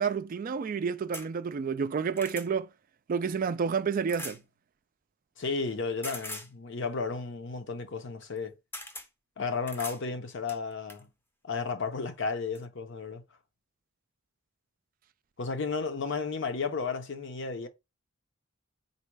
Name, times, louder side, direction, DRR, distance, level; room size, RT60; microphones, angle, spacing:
voice 1, 0.0-2.7 3.1-4.4, right 6 dB, 40° right, 0.3 m, -30 dB
sound 1, 1.1-1.3 1.8-2.5 4.1-4.4 6.0-6.5 8.2-8.4 8.7-9.1 9.7-10.0 10.5-11.0 12.1-12.2 12.5-12.6, left 1 dB, 10° left, 0.6 m, -41 dB
voice 2, 5.4-8.5 9.4-11.1 11.4-13.2 15.4-17.7, left 4 dB, 60° left, 0.7 m, -33 dB
4.0 x 2.2 x 4.5 m
head